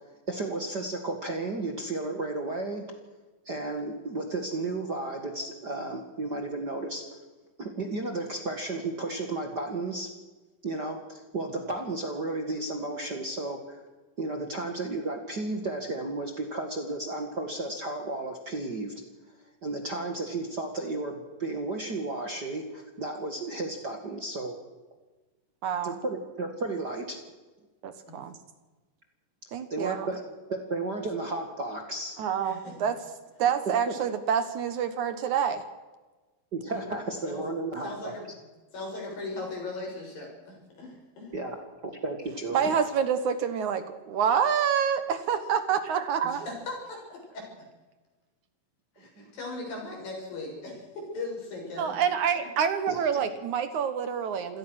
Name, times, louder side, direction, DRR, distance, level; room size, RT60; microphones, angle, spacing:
voice 1, 0.3-2.9 3.5-7.0 7.6-10.1 10.6-13.8 14.2-18.9 19.6-24.6 25.8-27.2 29.7-30.2 30.5-32.2 33.9-34.0 36.5-38.1 41.3-41.6 41.8-42.7 49.0-49.2 52.9-53.0, right 2 dB, 35° right, 4 dB, 1.9 m, -33 dB
voice 2, 25.6-26.0 27.8-28.3 29.5-30.1 32.2-33.0 33.4-35.6 42.5-46.5 51.8-54.6, right 7 dB, 65° right, 11 dB, 2.4 m, -27 dB
voice 3, 32.4-32.8 36.7-36.8 37.3-37.5 37.8-38.2 38.7-41.3 46.2-47.5 49.0-51.9, left 2 dB, 75° left, -1 dB, 8.7 m, -38 dB
27.0 x 17.0 x 6.4 m, 1.2 s
omnidirectional pair, 4.0 m